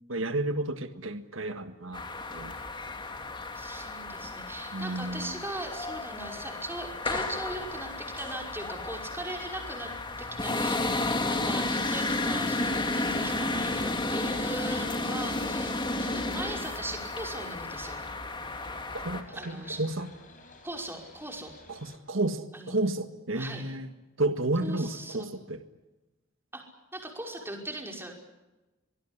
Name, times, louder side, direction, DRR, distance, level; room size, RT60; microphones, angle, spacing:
voice 1, 0.1-2.0 2.3-2.5 4.7-5.3 18.9-20.1 21.7-23.9 24.2-25.6, right 2 dB, 70° right, 8 dB, 1.7 m, -31 dB
sound 1, 1.9-19.2, left 2 dB, 25° left, 2.5 m, -32 dB
voice 2, 3.5-9.9 10.2-18.0 19.3-19.8 20.6-21.5 22.5-22.8 23.4-23.7 24.6-25.3 26.5-26.6 26.9-28.2, right 1 dB, 10° right, 2 dB, 5.5 m, -39 dB
sound 2, 13.7-22.0, left 2 dB, 40° left, 6.1 m, -51 dB
25.0 x 20.5 x 10.0 m, 1.1 s
head